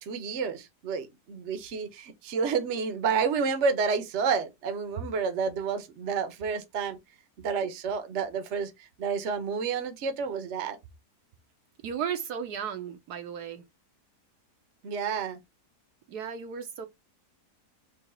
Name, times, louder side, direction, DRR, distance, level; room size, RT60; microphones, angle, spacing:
voice 1, 0.0-7.0 7.4-10.8 14.8-15.4, right 5 dB, 50° right, 1.1 m, -30 dB
voice 2, 11.8-13.6 16.1-16.9, right 8 dB, 75° right, 1.2 m, -35 dB
3.9 x 3.0 x 4.2 m
omnidirectional pair, 1.7 m